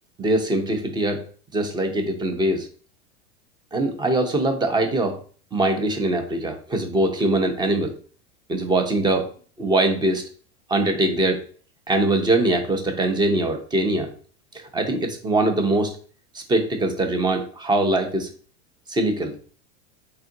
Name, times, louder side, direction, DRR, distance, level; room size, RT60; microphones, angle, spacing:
voice 1, 0.2-1.2 1.5-2.7 3.7-5.2 5.5-8.0 8.5-9.3 9.6-10.2 10.7-11.5 11.9-14.1 14.7-16.0 16.3-18.3 18.9-19.3, right 2 dB, 15° right, 5 dB, 0.5 m, -22 dB
3.7 x 2.5 x 3.7 m, 0.42 s
hypercardioid pair, 115°, 34 cm